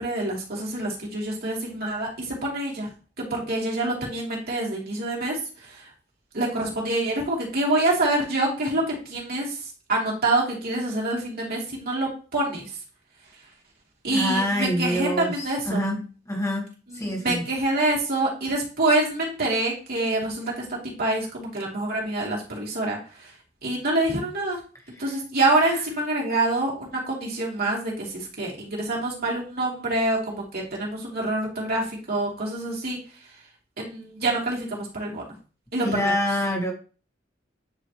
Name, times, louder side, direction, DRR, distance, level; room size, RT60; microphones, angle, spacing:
voice 1, 0.0-2.9 3.2-5.9 6.3-12.6 14.0-15.8 16.9-23.3 23.6-24.6 25.0-33.0 33.8-35.2 35.7-36.1, right 2 dB, 55° right, -3 dB, 3.0 m, -26 dB
voice 2, 14.1-16.7 16.9-17.4 25.0-25.1 25.6-25.8 35.8-36.7, equal, 15° left, 1 dB, 1.6 m, -26 dB
9.5 x 5.0 x 3.1 m, 0.36 s
head